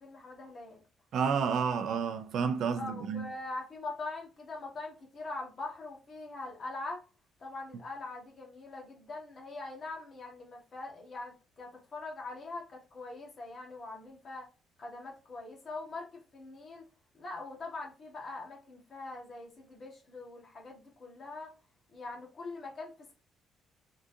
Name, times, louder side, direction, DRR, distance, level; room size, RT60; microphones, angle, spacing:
voice 1, 0.0-0.8 2.7-7.0 7.4-14.5 14.8-16.9 17.1-21.5 21.9-23.1, left 3 dB, 35° left, 1.5 m, -43 dB
voice 2, 1.1-3.3, right 6 dB, 55° right, 0.5 m, -30 dB
3.7 x 3.7 x 2.6 m
cardioid pair, 165°, 0 cm